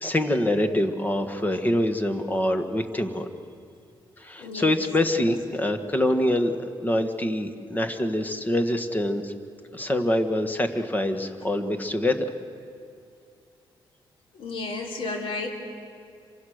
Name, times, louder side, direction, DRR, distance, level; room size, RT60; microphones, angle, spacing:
voice 1, 0.0-3.3 4.2-9.3 9.7-12.3, left 1 dB, 20° left, 6 dB, 1.5 m, -25 dB
voice 2, 4.4-4.8 14.4-15.5, left 3 dB, 75° left, 1 dB, 3.6 m, -32 dB
27.0 x 24.5 x 6.6 m, 2.5 s
cardioid pair, 125°, 9 cm